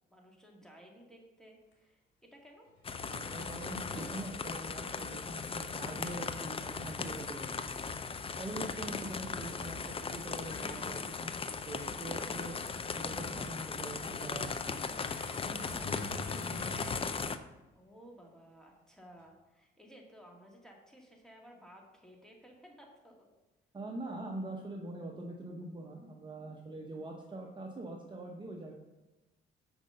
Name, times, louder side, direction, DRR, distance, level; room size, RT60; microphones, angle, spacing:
voice 1, 0.1-2.7 17.8-23.3, equal, 5° left, 0 dB, 2.0 m, -57 dB
sound 1, 1.7-1.8 2.7-4.3 5.3-6.1 6.5-7.0 8.6-9.1 10.0-11.0 11.5-13.7 14.9-17.0 17.6-17.7 19.2-19.3, left 2 dB, 75° left, 2.5 m, -48 dB
sound 2, 2.8-17.4, left 5 dB, 30° left, 0.5 m, -38 dB
voice 2, 3.1-7.5 8.4-11.3 11.7-12.5 13.0-15.1 15.7-15.8 23.7-28.7, right 2 dB, 25° right, 0 dB, 0.9 m, -43 dB
6.2 x 5.2 x 6.6 m, 1.1 s
cardioid pair, 90°, 20 cm